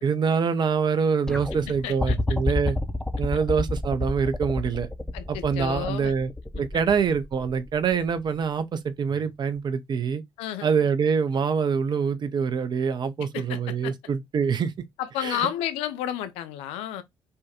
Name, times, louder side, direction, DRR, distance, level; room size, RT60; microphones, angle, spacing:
voice 1, 0.0-2.8 3.2-4.9 5.3-6.3 6.6-10.2 10.6-14.7 15.2-15.4, right 6 dB, 45° right, 0.5 m, -25 dB
sound 1, 1.3-8.4 9.6-9.7, left 2 dB, 5° left, 0.6 m, -29 dB
voice 2, 1.8-2.2 5.1-6.1 6.5-6.8 10.4-10.9 13.3-13.9 15.0-17.0, left 11 dB, 70° left, 0.5 m, -32 dB
3.4 x 2.2 x 2.8 m
figure-of-eight pair, 40°, 11 cm